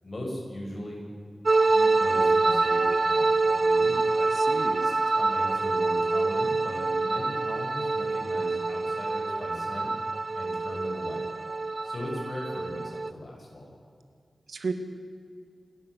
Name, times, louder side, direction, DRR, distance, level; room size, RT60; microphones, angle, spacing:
voice 1, 0.0-1.0 1.7-4.1 4.8-9.9 10.3-11.3 11.8-13.7, left 1 dB, 35° left, -2 dB, 7.0 m, -39 dB
sound 1, 1.5-13.1, right 3 dB, 40° right, 0.6 m, -26 dB
voice 2, 4.2-4.9 14.5-14.7, right 4 dB, 70° right, 7 dB, 2.0 m, -34 dB
28.0 x 13.0 x 8.4 m, 2.2 s
wide cardioid pair, 130°, 0 cm